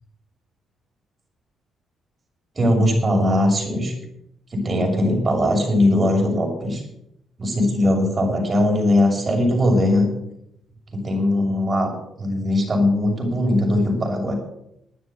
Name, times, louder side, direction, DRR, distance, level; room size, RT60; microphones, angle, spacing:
voice 1, 2.5-3.9 4.5-6.8 7.4-10.1 10.9-11.9 12.2-14.4, left 1 dB, 30° right, 1 dB, 6.8 m, -20 dB
11.5 x 9.7 x 8.4 m, 0.76 s
cardioid pair, 90°, 0 cm